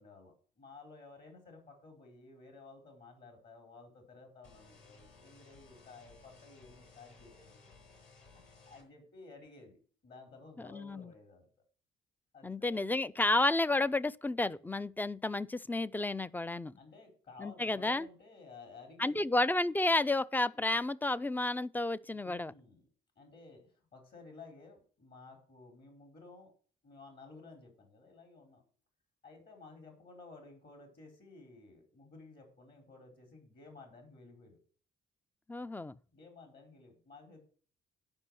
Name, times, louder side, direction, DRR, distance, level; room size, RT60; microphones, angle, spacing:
voice 1, 0.0-7.7 8.3-11.5 12.3-13.0 16.8-19.3 22.1-22.8 23.2-26.5 26.8-28.6 29.2-34.6 36.1-37.4, left 3 dB, 55° left, 4.6 m, -55 dB
sound 1, 4.4-8.8, left 4 dB, 85° left, 7.3 m, -59 dB
voice 2, 10.7-11.1 12.4-16.8 17.4-18.1 19.0-22.5 35.5-36.0, left 2 dB, 10° left, 0.4 m, -31 dB
11.5 x 5.3 x 7.9 m
cardioid pair, 90°, 20 cm